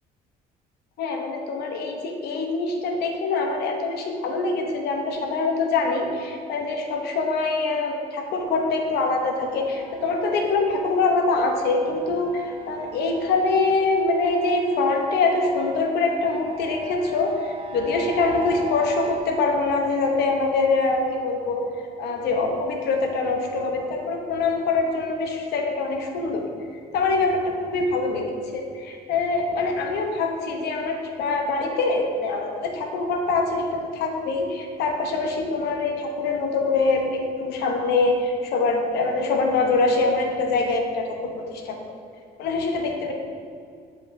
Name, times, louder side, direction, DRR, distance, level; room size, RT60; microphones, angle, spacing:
voice 1, 1.0-26.5 26.9-41.8 42.4-43.1, left 3 dB, 75° left, 2 dB, 0.8 m, -24 dB
sound 1, 9.3-19.2, right 2 dB, 30° right, 0.6 m, -43 dB
9.7 x 4.9 x 2.6 m, 2.3 s
cardioid pair, 110°, 17 cm